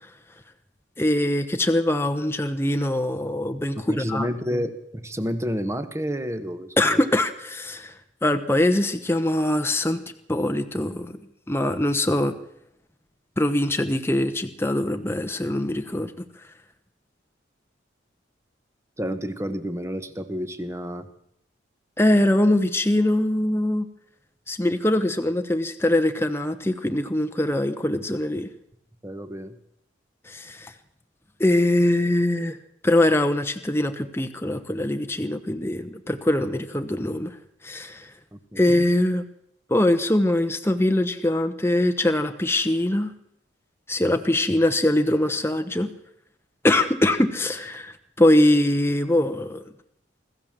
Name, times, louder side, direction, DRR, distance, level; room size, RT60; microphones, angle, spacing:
voice 1, 1.0-4.6 6.8-10.0 10.3-11.2 11.5-12.3 13.4-16.5 22.0-23.9 24.5-28.5 30.2-30.7 31.4-32.6 32.8-37.4 37.6-38.1 38.6-39.2 39.7-43.1 43.9-45.9 46.6-49.6, left 1 dB, 10° left, 8 dB, 1.0 m, -22 dB
voice 2, 3.7-7.0 19.0-21.1 29.0-29.5 38.3-38.6, equal, 15° right, 10 dB, 1.3 m, -30 dB
25.5 x 14.5 x 7.5 m, 0.77 s
head